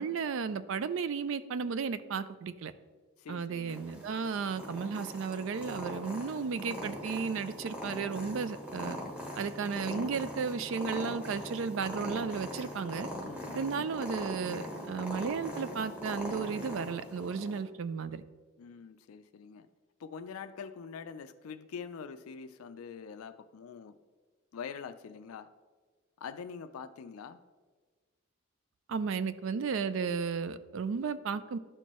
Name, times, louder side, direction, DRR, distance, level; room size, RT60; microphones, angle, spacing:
voice 1, 0.0-2.7 3.3-9.0 9.4-13.1 13.5-18.2 28.9-31.6, right 5 dB, 60° right, 14 dB, 0.3 m, -34 dB
voice 2, 3.2-3.8 13.2-13.8 18.6-19.7 20.0-24.0 24.5-25.5 26.2-27.4, left 6 dB, 80° left, 10 dB, 0.4 m, -44 dB
Purr, 3.7-17.6, equal, 5° right, 1.0 m, -41 dB
12.0 x 4.4 x 3.0 m, 1.4 s
head